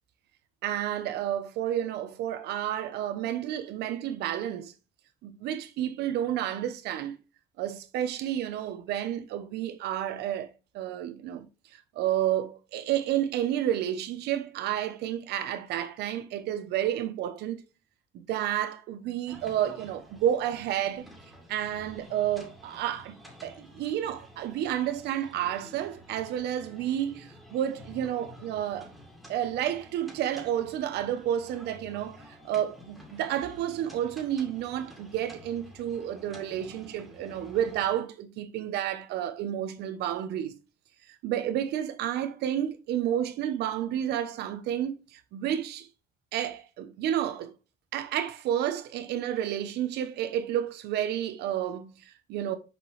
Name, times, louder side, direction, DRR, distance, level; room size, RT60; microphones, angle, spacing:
voice 1, 0.6-4.7 5.2-7.2 7.6-10.5 10.7-11.5 11.7-17.6 18.1-21.1 21.5-23.2 23.4-28.9 29.3-40.6 41.2-45.9 46.3-47.5 47.9-52.6, right 11 dB, 80° right, 0.9 m, -30 dB
sound 1, 19.3-37.9, equal, ahead, 2.2 m, -51 dB
6.1 x 5.2 x 3.3 m
cardioid pair, 110°, 17 cm